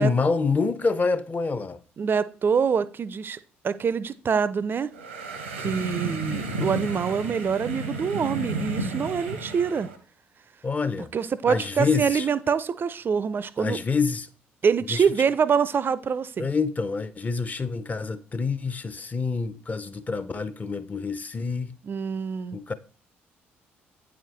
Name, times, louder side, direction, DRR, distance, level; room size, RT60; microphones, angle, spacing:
voice 1, 0.0-1.8 10.6-11.1 11.5-12.3 13.6-14.3 14.9-15.0 16.4-21.8 22.5-22.7, left 4 dB, 25° left, 0.6 m, -27 dB
voice 2, 2.0-3.4 3.6-4.9 5.6-9.9 11.1-13.8 14.6-16.5 21.8-22.6, right 6 dB, 35° right, 0.4 m, -25 dB
sound 1, 4.9-10.0, right 2 dB, 85° right, 0.9 m, -32 dB
8.8 x 4.9 x 3.2 m
figure-of-eight pair, 50°, 6 cm